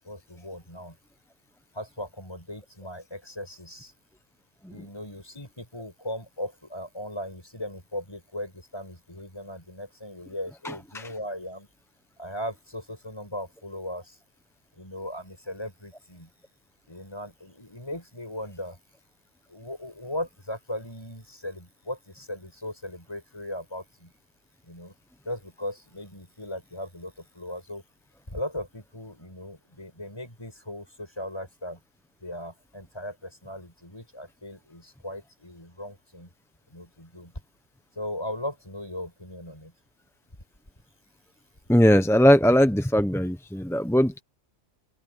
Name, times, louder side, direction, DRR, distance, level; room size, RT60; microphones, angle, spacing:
voice 1, 0.1-1.0 1.7-3.9 4.7-11.7 12.2-14.2 14.8-16.3 16.9-18.8 19.5-24.1 24.7-24.9 25.3-27.8 28.3-31.8 32.2-36.3 36.7-37.3 38.0-39.7, left 1 dB, 20° left, 5.9 m, -38 dB
voice 2, 10.6-11.1 41.7-44.2, equal, 5° left, 0.6 m, -20 dB
open air
omnidirectional pair, 1.4 m